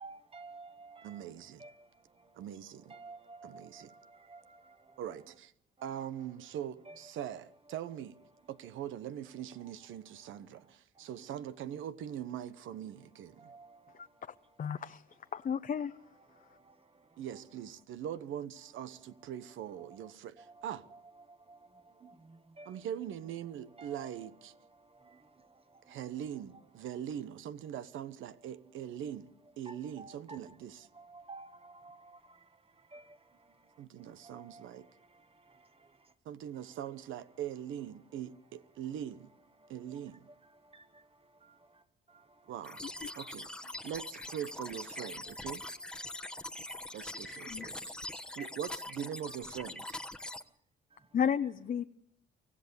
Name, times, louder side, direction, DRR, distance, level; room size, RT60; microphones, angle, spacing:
voice 1, 0.0-1.0 1.6-1.7 2.9-3.6 4.3-4.4 6.9-7.0 13.5-13.7 22.0-22.1 22.6-22.7 23.8-24.3 29.7-30.4 31.1-31.9 32.9-33.0 34.3-34.6, right 3 dB, 30° right, 1.5 m, -49 dB
voice 2, 1.0-1.6 2.3-2.9 3.4-3.9 5.0-5.5 5.8-8.2 8.5-13.5 17.2-20.8 22.7-24.5 25.9-29.3 29.6-30.9 33.8-34.9 36.2-39.3 39.7-40.3 42.5-42.8 43.1-43.5 43.8-45.6 46.9-48.0 48.4-50.0, right 10 dB, 80° right, 1.1 m, -42 dB
voice 3, 14.6-15.0 15.3-15.9 42.8-43.1 47.5-47.7 51.1-51.8, left 7 dB, 45° left, 0.8 m, -33 dB
sound 1, 42.6-50.4, left 1 dB, 5° left, 1.2 m, -43 dB
24.5 x 16.0 x 7.1 m
cardioid pair, 90°, 20 cm